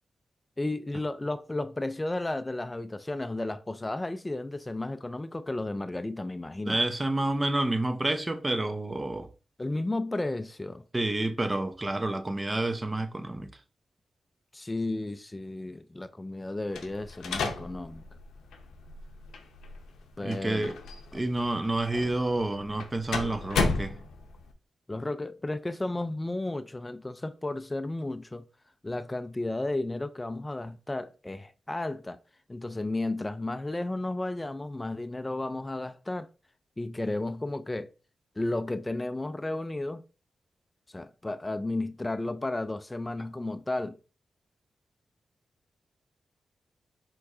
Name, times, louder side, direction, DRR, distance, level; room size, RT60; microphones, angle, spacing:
voice 1, 0.6-6.8 9.6-10.9 14.5-18.0 20.2-20.7 24.9-28.4 28.8-32.2 32.5-36.3 36.8-37.9 38.4-40.0 40.9-44.0, left 2 dB, 25° left, 0.4 m, -33 dB
voice 2, 6.6-9.3 10.9-13.5 20.2-20.8 21.1-24.0, right 2 dB, 25° right, 0.8 m, -29 dB
sound 1, 16.7-24.5, left 4 dB, 85° left, 0.7 m, -35 dB
4.5 x 3.8 x 2.7 m
supercardioid pair, 40°, 0 cm